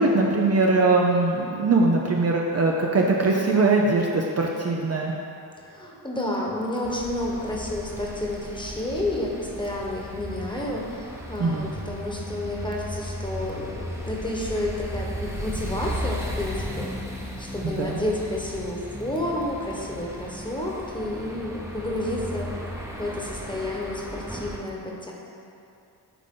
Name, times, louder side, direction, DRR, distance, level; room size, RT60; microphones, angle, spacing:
voice 1, 0.0-5.1 11.4-11.7 17.6-18.0, right 3 dB, 35° right, -1 dB, 0.6 m, -21 dB
voice 2, 5.7-22.5 23.0-25.1, left 1 dB, 10° left, -3 dB, 1.3 m, -30 dB
sound 1, 6.8-24.6, equal, 5° right, 0.9 m, -35 dB
9.1 x 3.7 x 3.8 m, 2.6 s
cardioid pair, 65°, 42 cm